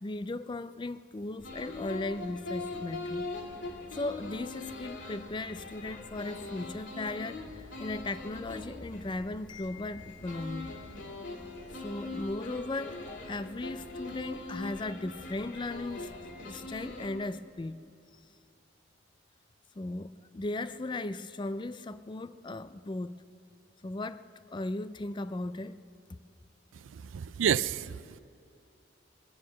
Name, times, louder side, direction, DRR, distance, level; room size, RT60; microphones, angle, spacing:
voice 1, 0.0-3.3 3.9-11.0 11.8-16.1 16.4-17.8 19.8-23.2 23.8-25.8, left 2 dB, 25° left, 14 dB, 0.4 m, -37 dB
sound 1, 1.4-17.1, left 2 dB, 65° left, 2.5 m, -42 dB
voice 2, 26.9-28.2, right 8 dB, 85° right, 18 dB, 0.4 m, -30 dB
20.0 x 9.6 x 7.4 m, 2.5 s
head